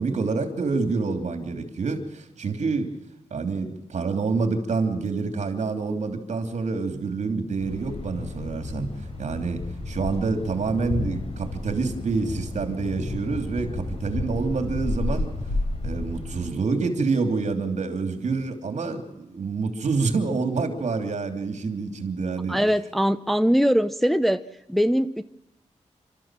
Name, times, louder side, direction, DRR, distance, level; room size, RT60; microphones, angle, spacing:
voice 1, 0.0-2.9 3.3-15.3 15.8-22.6, right 4 dB, 70° right, 7 dB, 3.0 m, -27 dB
Thunder, 7.6-16.5, left 2 dB, 55° left, 4.6 m, -32 dB
voice 2, 22.5-24.4 24.7-25.2, equal, ahead, 10 dB, 0.7 m, -21 dB
29.5 x 13.5 x 7.6 m, 0.93 s
wide cardioid pair, 125°, 12 cm